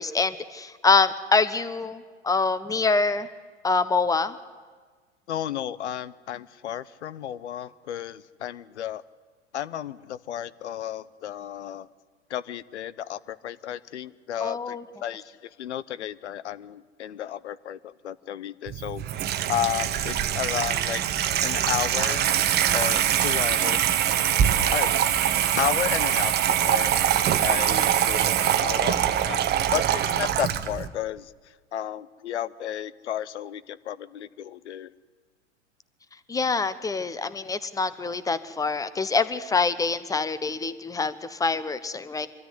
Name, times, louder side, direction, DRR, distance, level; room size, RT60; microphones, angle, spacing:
voice 1, 0.0-3.3 3.6-4.4 14.4-14.8 36.3-42.3, left 4 dB, 10° left, 14 dB, 0.9 m, -25 dB
voice 2, 5.3-9.0 9.5-11.9 12.3-19.2 19.5-21.0 21.4-22.3 22.7-24.0 24.7-24.9 25.6-27.0 27.4-29.0 29.3-31.3 31.7-34.9, left 11 dB, 65° left, 18 dB, 0.8 m, -33 dB
Water tap faucet / Sink (filling or washing), 18.7-30.9, right 10 dB, 25° right, 1.1 m, -23 dB
24.0 x 13.5 x 9.7 m, 1.5 s
figure-of-eight pair, 90°, 36 cm